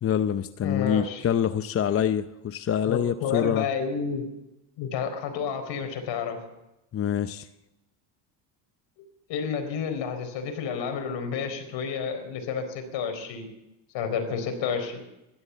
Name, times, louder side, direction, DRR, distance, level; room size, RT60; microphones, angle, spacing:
voice 1, 0.0-3.7 6.9-7.5, left 9 dB, 30° left, 11 dB, 0.6 m, -26 dB
voice 2, 0.6-1.2 2.9-4.3 4.8-6.4 9.3-13.5 13.9-15.0, left 6 dB, 60° left, 6 dB, 4.4 m, -30 dB
15.5 x 13.0 x 7.1 m, 0.92 s
supercardioid pair, 100°, 49 cm